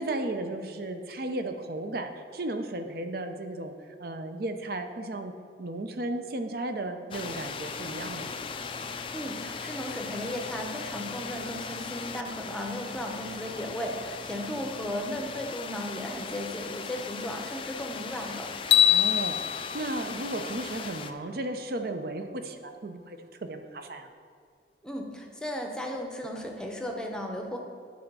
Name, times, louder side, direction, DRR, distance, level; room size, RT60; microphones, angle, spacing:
voice 1, 0.0-3.7 4.0-5.3 5.6-8.4 18.9-24.1, right 2 dB, 55° right, 7 dB, 0.6 m, -35 dB
sound 1, 7.1-21.1, left 5 dB, 30° left, 0.3 m, -38 dB
voice 2, 9.1-18.5 24.8-27.6, equal, 5° left, 1 dB, 0.7 m, -35 dB
sound 2, 18.7-21.0, left 10 dB, 75° left, 0.6 m, -24 dB
10.5 x 4.3 x 5.4 m, 2.1 s
head